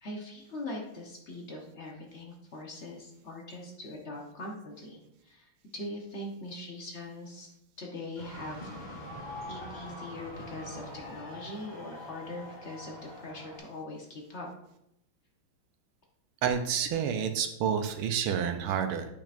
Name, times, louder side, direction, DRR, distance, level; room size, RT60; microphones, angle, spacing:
voice 1, 0.0-7.5 7.8-8.7 9.5-14.5, left 1 dB, 55° left, -1 dB, 0.8 m, -42 dB
sound 1, 8.2-13.6, left 1 dB, 20° left, 2.2 m, -44 dB
voice 2, 16.4-19.1, right 8 dB, 85° right, 7 dB, 1.5 m, -29 dB
8.6 x 5.7 x 2.5 m, 0.81 s
omnidirectional pair, 2.4 m